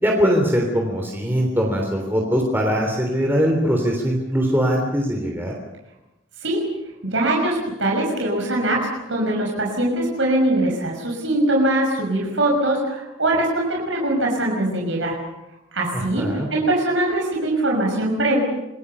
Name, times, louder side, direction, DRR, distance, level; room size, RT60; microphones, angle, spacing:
voice 1, 0.0-5.5 15.9-16.5, equal, 10° right, 0 dB, 3.5 m, -21 dB
voice 2, 7.0-15.2 15.7-18.4, right 1 dB, 75° right, -1 dB, 6.0 m, -22 dB
27.0 x 22.0 x 6.9 m, 0.93 s
head